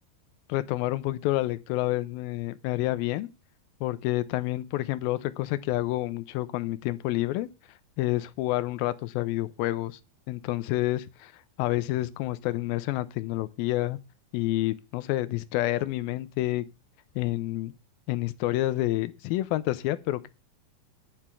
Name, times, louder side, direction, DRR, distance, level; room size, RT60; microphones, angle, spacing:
voice 1, 0.5-3.3 3.8-7.5 8.0-10.0 10.3-11.3 11.6-14.0 14.3-16.7 17.2-17.7 18.1-20.3, left 16 dB, 80° left, 2.4 m, -28 dB
8.8 x 5.6 x 6.1 m
omnidirectional pair, 4.4 m